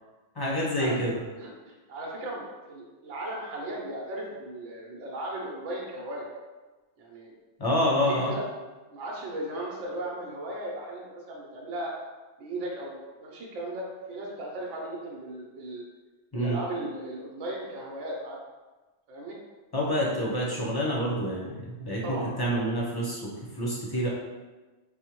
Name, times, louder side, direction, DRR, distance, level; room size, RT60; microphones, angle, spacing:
voice 1, 0.3-1.2 7.6-8.3 16.3-16.6 19.7-23.2 23.5-24.1, equal, 25° left, -5 dB, 0.6 m, -27 dB
voice 2, 1.4-6.3 7.0-7.3 7.8-8.5 8.9-11.9 12.4-15.8 16.3-18.4 19.1-19.4 22.0-22.6, right 1 dB, 85° right, -3 dB, 1.0 m, -37 dB
4.9 x 2.1 x 2.9 m, 1.2 s
omnidirectional pair, 1.2 m